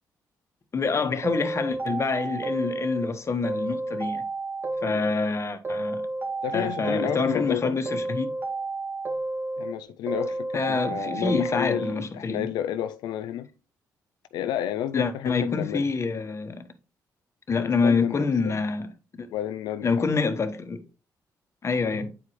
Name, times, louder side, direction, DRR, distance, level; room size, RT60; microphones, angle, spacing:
voice 1, 0.7-4.3 4.8-6.0 6.5-8.3 10.5-12.5 14.9-16.7 17.5-19.3 19.8-20.8 21.6-22.2, left 4 dB, 40° left, 1.2 m, -27 dB
sound 1, 1.2-3.1 3.4-5.3 5.6-7.5 7.9-9.7 10.1-11.9, right 2 dB, 30° right, 2.0 m, -31 dB
voice 2, 6.4-7.8 9.6-13.5 14.3-15.9 17.6-18.6 19.3-20.1 21.8-22.0, left 11 dB, 85° left, 0.4 m, -31 dB
8.5 x 4.8 x 3.1 m
cardioid pair, 70°, 7 cm